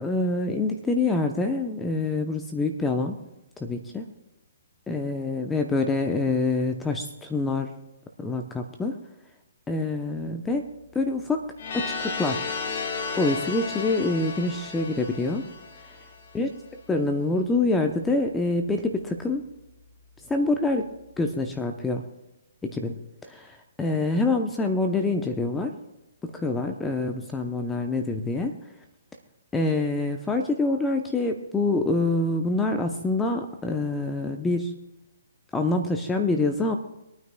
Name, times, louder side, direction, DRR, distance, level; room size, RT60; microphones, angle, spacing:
voice 1, 0.0-3.2 3.6-4.0 4.9-7.7 8.2-9.0 9.7-10.7 10.9-11.4 11.7-12.5 13.1-15.4 16.3-16.5 16.9-19.5 20.3-20.9 21.2-22.0 22.6-25.7 26.3-28.5 29.5-34.8 35.5-36.8, left 2 dB, 10° left, 4 dB, 0.7 m, -26 dB
sound 1, 11.6-16.4, left 4 dB, 55° left, 1.6 m, -33 dB
25.5 x 9.3 x 2.3 m, 0.95 s
hypercardioid pair, 135°, 0 cm